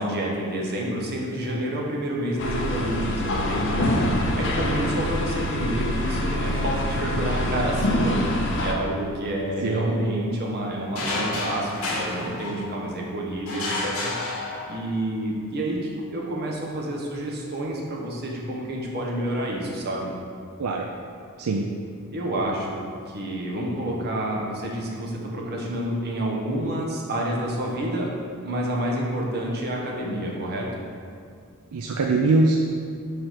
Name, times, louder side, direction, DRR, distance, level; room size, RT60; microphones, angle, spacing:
voice 1, 0.0-4.1 4.4-8.2 8.6-14.1 14.7-20.1 22.1-22.8 23.1-28.1 28.4-30.8, right 1 dB, 45° right, -2 dB, 1.2 m, -29 dB
sound 1, 2.4-8.7, left 1 dB, 55° left, 0.8 m, -25 dB
voice 2, 9.6-9.9 20.6-20.9 21.4-21.7 31.7-32.6, right 3 dB, 75° right, 1 dB, 0.5 m, -22 dB
sound 2, 10.9-12.9 13.5-15.0, left 2 dB, 75° left, 1.7 m, -30 dB
5.1 x 4.9 x 5.8 m, 2.3 s
head